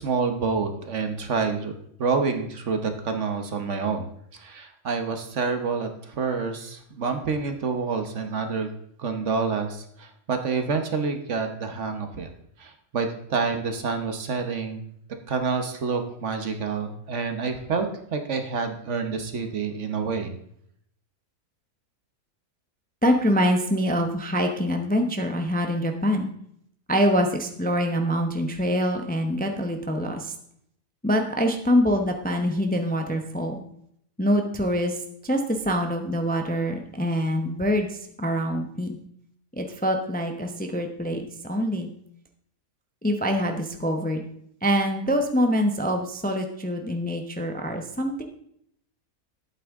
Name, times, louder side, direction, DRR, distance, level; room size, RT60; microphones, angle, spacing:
voice 1, 0.0-8.7 9.0-12.3 12.6-14.9 15.3-17.9 18.1-20.4, right 5 dB, 55° right, 7 dB, 1.3 m, -28 dB
voice 2, 23.0-26.3 26.9-30.3 31.0-33.6 34.2-39.0 39.5-41.9 43.0-44.2 44.6-48.2, equal, 10° left, 4 dB, 0.7 m, -25 dB
11.5 x 8.5 x 3.6 m, 0.70 s
omnidirectional pair, 1.5 m